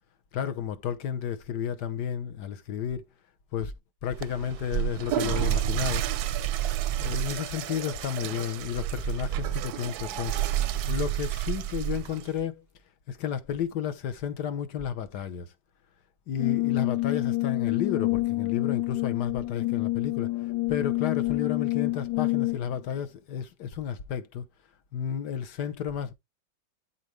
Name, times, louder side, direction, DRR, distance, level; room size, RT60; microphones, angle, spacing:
voice 1, 0.3-3.1 3.5-3.7 4.0-6.1 6.9-10.4 10.9-12.6 13.1-15.5 16.3-20.4 20.7-24.4 24.9-26.1, left 8 dB, 60° left, 1.5 m, -32 dB
Water / Toilet flush, 4.1-12.4, right 11 dB, 70° right, 0.9 m, -36 dB
sound 1, 4.2-7.4 8.6-12.1, right 13 dB, 90° right, 0.6 m, -30 dB
Brass instrument, 16.4-22.8, left 20 dB, 80° left, 1.5 m, -27 dB
12.0 x 4.2 x 3.2 m
omnidirectional pair, 2.1 m